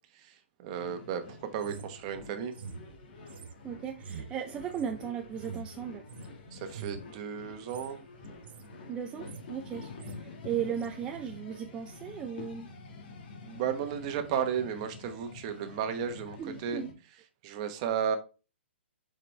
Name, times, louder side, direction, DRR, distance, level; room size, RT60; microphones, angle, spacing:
voice 1, 0.1-2.5 6.5-8.0 13.4-18.2, right 8 dB, 35° right, 1.1 m, -34 dB
sound 1, 0.7-16.9, left 3 dB, 50° left, 1.8 m, -48 dB
sound 2, 1.6-6.3 6.7-7.1 7.6-7.9 8.2-8.7 9.0-9.6 9.8-10.2 10.7-10.9, right 7 dB, 55° right, 0.8 m, -46 dB
voice 2, 3.6-6.1 8.9-12.7 16.4-16.9, right 8 dB, 15° right, 0.4 m, -36 dB
6.8 x 5.0 x 3.3 m
hypercardioid pair, 155°, 6 cm